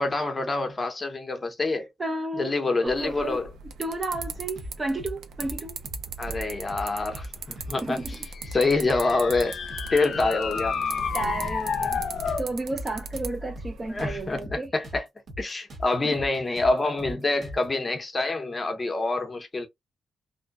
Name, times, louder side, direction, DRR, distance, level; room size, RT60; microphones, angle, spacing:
voice 1, 0.0-1.9 2.4-3.5 6.2-8.0 8.5-9.6 9.9-10.7 13.9-15.0 15.4-19.7, left 3 dB, 20° left, 0.7 m, -26 dB
voice 2, 2.0-2.5 2.8-3.4 3.8-5.8 7.8-8.2 11.1-12.0 12.4-14.7 16.0-16.2, right 2 dB, 20° right, 0.4 m, -32 dB
sound 1, 2.9-14.4, right 5 dB, 80° right, 0.4 m, -40 dB
sound 2, 4.1-4.7 5.0-5.1 5.4-6.4 6.7-6.9 7.1-8.1 8.4-8.6 8.8-9.9 10.1-10.3 10.6-12.0 12.3-15.0 15.3-15.4 15.7-17.7, equal, 50° right, 1.1 m, -39 dB
sound 3, 8.1-12.5, left 6 dB, 60° left, 0.4 m, -31 dB
2.6 x 2.1 x 2.2 m
wide cardioid pair, 150°, 0 cm